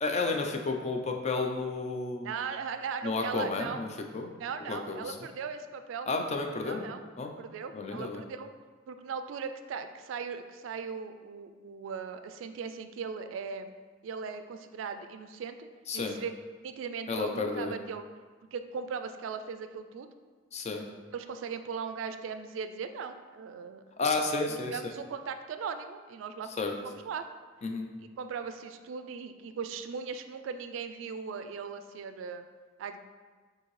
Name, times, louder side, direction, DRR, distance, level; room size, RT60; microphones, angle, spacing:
voice 1, 0.0-2.3 3.0-3.9 4.1-4.3 4.7-5.2 6.1-6.8 7.2-7.3 7.7-8.2 15.9-16.1 17.1-17.7 20.5-20.8 24.0-24.8 26.6-26.7 27.6-27.9, left 3 dB, 35° left, 3 dB, 0.4 m, -31 dB
voice 2, 2.2-3.8 4.4-6.1 6.6-7.0 7.4-8.5 8.9-13.7 14.0-15.7 15.9-18.0 18.5-20.1 21.1-23.8 24.5-27.2 28.0-32.5 32.8-33.0, right 6 dB, 80° right, 9 dB, 0.3 m, -38 dB
6.3 x 2.7 x 3.1 m, 1.4 s
head